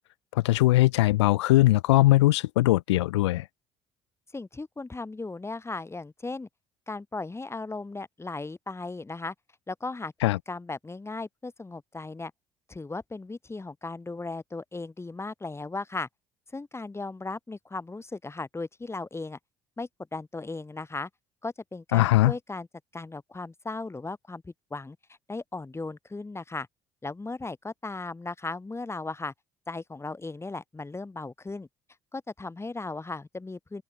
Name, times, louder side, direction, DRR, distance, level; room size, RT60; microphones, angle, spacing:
voice 1, 0.3-3.5 10.2-10.4 21.9-22.3, left 17 dB, 80° left, 0.5 m, -20 dB
voice 2, 4.3-6.5 6.9-9.3 9.7-10.1 10.5-12.3 12.7-16.1 16.5-19.4 19.8-21.1 21.4-22.7 22.9-25.0 25.3-26.7 27.0-29.3 29.7-31.7 32.1-33.8, left 3 dB, 20° left, 2.0 m, -36 dB
hypercardioid pair, 55°, 14 cm